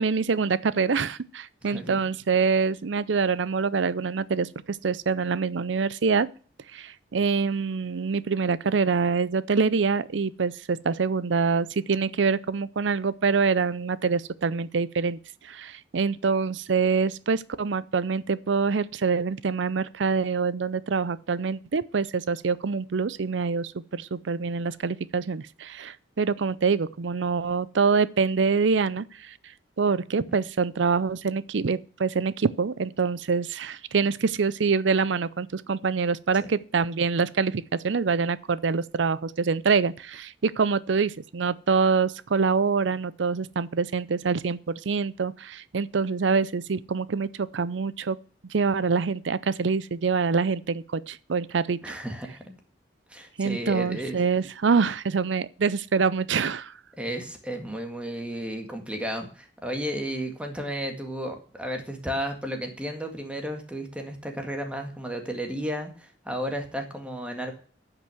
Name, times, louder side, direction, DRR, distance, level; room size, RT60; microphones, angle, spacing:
voice 1, 0.0-6.3 6.7-15.2 15.4-29.3 29.8-48.2 48.5-51.8 53.4-56.7, right 5 dB, 80° right, 0.5 m, -25 dB
voice 2, 1.6-2.0 30.3-30.4 51.8-52.5 53.1-54.2 57.0-67.5, equal, 5° right, 1.9 m, -33 dB
10.0 x 6.0 x 7.6 m
head